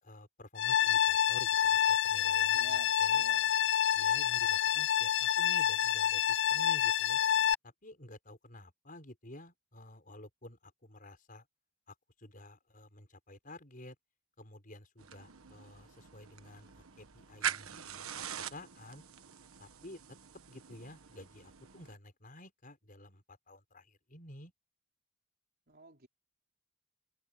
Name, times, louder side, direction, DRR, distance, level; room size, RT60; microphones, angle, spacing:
voice 1, 0.0-3.3 3.9-7.2 7.6-11.4 12.2-13.9 14.4-19.0 19.6-20.0 20.5-24.5, left 1 dB, 40° left, 6.0 m, -52 dB
sound 1, 0.6-7.5, left 10 dB, 55° left, 0.5 m, -28 dB
voice 2, 2.5-3.5 25.7-26.1, right 3 dB, 45° right, 4.7 m, -52 dB
sound 2, 15.0-22.0, right 8 dB, 80° right, 1.3 m, -43 dB
head